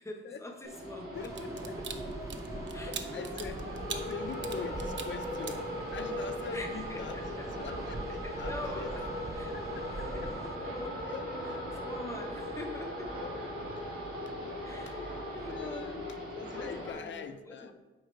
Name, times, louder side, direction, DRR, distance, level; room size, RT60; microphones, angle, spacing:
voice 1, 0.0-1.3 1.8-1.9 2.7-3.3 6.5-7.5 8.1-9.0 9.3-9.5 9.9-11.0 11.4-11.6 11.8-13.5 14.6-15.0 15.3-16.0 16.2-17.7, left 2 dB, 15° left, 2 dB, 0.8 m, -45 dB
sound 1, 0.6-16.9, equal, 90° right, 2.3 m, -38 dB
voice 2, 1.1-1.7 2.8-8.9 9.5-10.1 10.9-11.9 13.2-13.7 14.2-14.5 14.9-16.0 16.4-17.7, left 6 dB, 60° left, 9 dB, 0.5 m, -44 dB
sound 2, 1.1-10.6, right 2 dB, 15° right, 0.3 m, -44 dB
sound 3, 1.2-6.2 6.6-6.8, right 6 dB, 60° right, 0.6 m, -42 dB
7.7 x 4.9 x 4.4 m, 1.2 s
wide cardioid pair, 170°, 21 cm